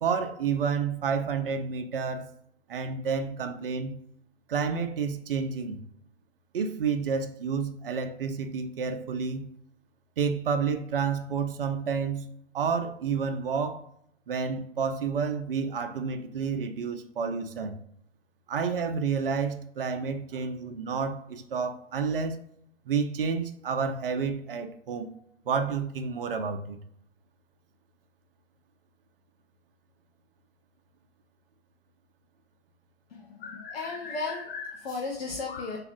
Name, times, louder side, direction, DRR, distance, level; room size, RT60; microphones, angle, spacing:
voice 1, 0.0-2.3 2.7-4.0 4.5-5.8 6.5-9.5 10.2-12.3 12.5-13.8 14.3-17.8 18.5-22.4 22.9-25.1 25.5-26.8, right 6 dB, 50° right, 0.4 m, -30 dB
voice 2, 33.2-35.8, left 4 dB, 55° left, 0.6 m, -35 dB
3.5 x 2.3 x 2.6 m
figure-of-eight pair, 120°, 37 cm